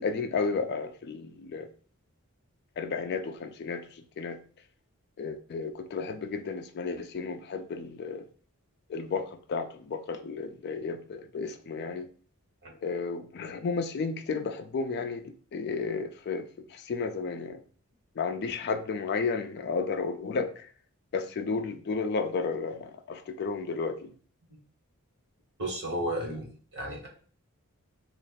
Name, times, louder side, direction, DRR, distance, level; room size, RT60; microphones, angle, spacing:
voice 1, 0.0-1.7 2.8-4.4 5.2-8.3 8.9-12.1 12.8-17.6 18.2-20.7 21.1-24.1, left 4 dB, 45° left, 0.3 m, -33 dB
voice 2, 25.6-26.5 26.7-27.1, right 1 dB, 50° right, 1.3 m, -33 dB
3.2 x 2.4 x 4.0 m
head